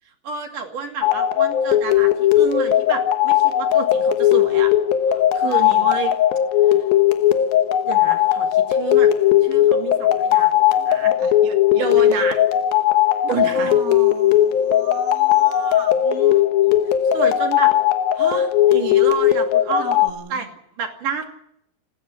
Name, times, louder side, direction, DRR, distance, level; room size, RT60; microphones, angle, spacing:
voice 1, 0.2-4.7 5.1-6.2 7.9-9.1 9.4-11.1 11.8-12.4 13.2-13.7 16.1-16.7 17.1-17.7 18.1-20.0 20.3-21.3, right 6 dB, 60° right, 4 dB, 3.8 m, -29 dB
sound 1, 1.0-20.1, left 11 dB, 75° left, 2.8 m, -17 dB
voice 2, 5.3-5.9 11.2-12.3 13.5-16.0 19.7-20.4, right 5 dB, 35° right, 4 dB, 1.5 m, -37 dB
28.0 x 11.0 x 9.9 m, 0.73 s
omnidirectional pair, 4.5 m